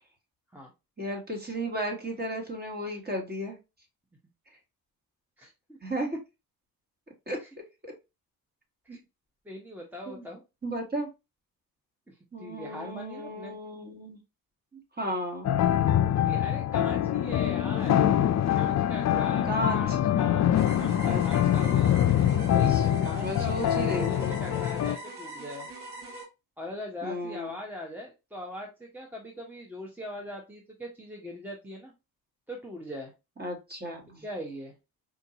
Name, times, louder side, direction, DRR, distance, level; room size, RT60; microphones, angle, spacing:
voice 1, 1.0-3.6 5.8-6.2 7.3-7.4 7.8-7.9 8.9-9.0 10.1-10.2 10.6-11.1 12.3-14.2 14.7-15.5 19.4-20.0 21.0-21.2 22.7-22.8 23.2-24.3 27.0-27.5 33.4-34.2, equal, 25° right, 2 dB, 1.6 m, -34 dB
voice 2, 5.4-5.8 7.4-7.5 8.8-9.0 9.4-10.4 12.1-13.6 16.2-18.0 18.5-22.0 22.5-22.8 23.0-25.7 26.6-31.9 32.5-33.1 34.2-34.7, left 1 dB, 5° right, -1 dB, 0.8 m, -41 dB
sound 1, 15.4-25.0, left 11 dB, 45° left, 0.4 m, -24 dB
sound 2, 20.5-26.2, right 1 dB, 80° right, 2.4 m, -41 dB
4.6 x 2.6 x 2.8 m, 0.25 s
cardioid pair, 90°, 38 cm